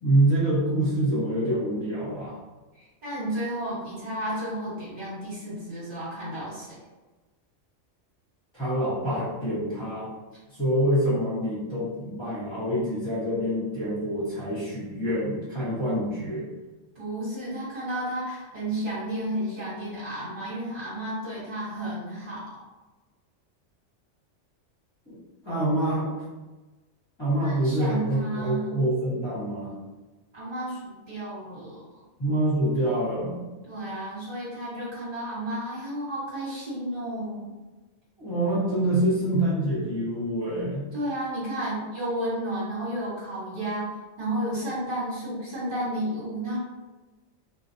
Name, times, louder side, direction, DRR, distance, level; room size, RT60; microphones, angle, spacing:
voice 1, 0.0-2.4 8.5-10.1 10.5-16.4 25.1-25.2 25.4-26.1 27.2-29.7 32.2-33.4 38.2-40.9, right 1 dB, 20° left, -10 dB, 1.3 m, -26 dB
voice 2, 2.7-6.7 16.9-22.4 27.4-28.8 30.3-32.0 33.7-37.5 40.9-46.6, right 1 dB, 45° right, -9 dB, 1.4 m, -32 dB
3.9 x 2.4 x 2.7 m, 1.2 s
omnidirectional pair, 1.3 m